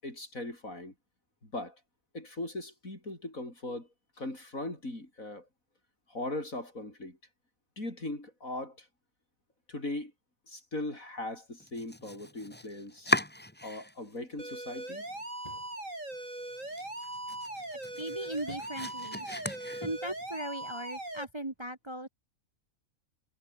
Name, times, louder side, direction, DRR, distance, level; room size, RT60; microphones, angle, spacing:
voice 1, 0.0-0.9 1.4-1.8 2.1-3.9 4.2-5.5 6.1-7.2 7.8-8.9 9.7-10.1 10.5-13.1 13.6-15.1, left 2 dB, 70° left, 7.8 m, -39 dB
Domestic sounds home sounds, 11.6-14.2 14.5-15.2 15.6-15.7 16.1-16.2 16.6-20.3, left 1 dB, 5° left, 1.7 m, -37 dB
sound 1, 14.4-21.2, right 1 dB, 65° right, 8.3 m, -40 dB
sound 2, 15.3-15.8 18.4-18.9 19.3-19.4, left 1 dB, 25° left, 7.6 m, -50 dB
voice 2, 17.9-19.4 19.8-22.1, right 1 dB, 20° right, 1.4 m, -38 dB
omnidirectional pair, 1.5 m